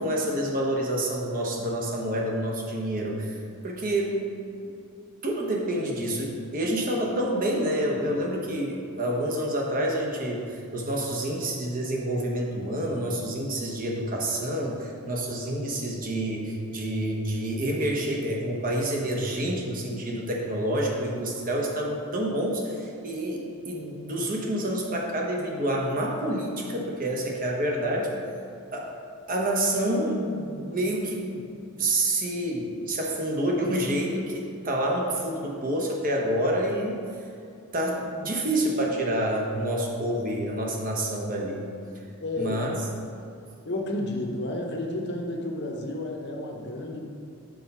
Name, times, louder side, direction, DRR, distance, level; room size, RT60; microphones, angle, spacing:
voice 1, 0.0-4.3 4.6-4.7 5.2-28.1 28.7-28.9 29.3-31.4 31.8-37.0 37.7-41.6 42.4-42.8, right 1 dB, 40° right, -1 dB, 1.0 m, -28 dB
voice 2, 42.2-42.7 43.6-47.0, left 1 dB, 50° left, 1 dB, 0.8 m, -31 dB
6.4 x 4.2 x 5.4 m, 2.6 s
head